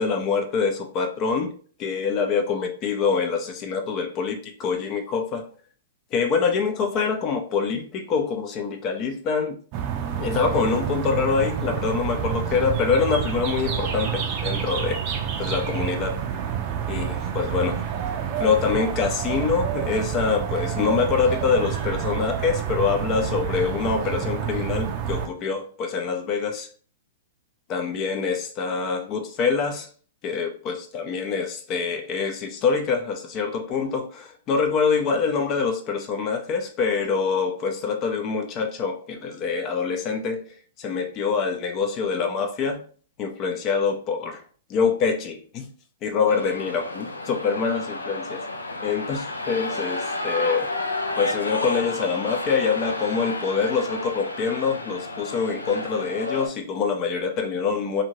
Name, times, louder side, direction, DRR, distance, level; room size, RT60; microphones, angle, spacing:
voice 1, 0.0-1.5 1.8-5.4 6.1-9.5 10.2-15.0 15.4-16.2 16.9-17.8 18.4-26.7 27.7-29.9 30.2-40.5 40.8-42.8 43.2-44.4 44.7-45.7 46.0-48.4 48.8-50.7 51.2-58.0, left 5 dB, 35° left, 5 dB, 0.5 m, -25 dB
sound 1, 9.7-25.3, right 8 dB, 40° right, 0.5 m, -28 dB
sound 2, 46.3-56.5, left 2 dB, 90° left, 0.4 m, -31 dB
2.6 x 2.4 x 3.0 m, 0.43 s
figure-of-eight pair, 110°, 0 cm